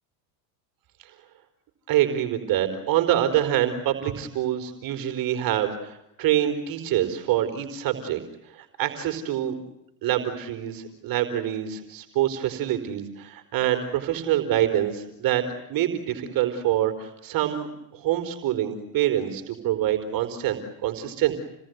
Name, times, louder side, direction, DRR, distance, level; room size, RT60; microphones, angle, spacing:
voice 1, 1.9-8.2 8.5-9.5 10.0-21.4, right 12 dB, 50° right, 8 dB, 4.6 m, -26 dB
29.5 x 19.5 x 9.5 m, 0.85 s
supercardioid pair, 100°, 44 cm